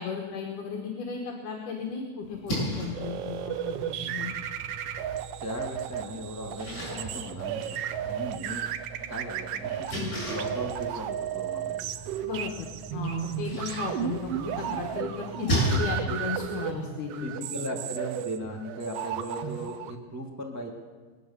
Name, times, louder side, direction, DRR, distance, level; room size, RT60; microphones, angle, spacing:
voice 1, 0.0-4.3 9.9-10.1 12.2-17.3, left 6 dB, 80° left, 0 dB, 2.9 m, -35 dB
Splash splatter, 2.2-15.7, right 1 dB, 30° left, 7.4 m, -37 dB
sound 1, 3.0-19.9, right 10 dB, 80° right, 1.3 m, -34 dB
voice 2, 5.4-7.8 8.0-11.9 15.5-15.7 17.2-20.7, equal, 25° right, 0 dB, 0.3 m, -37 dB
22.5 x 9.2 x 6.9 m, 1.4 s
omnidirectional pair, 3.6 m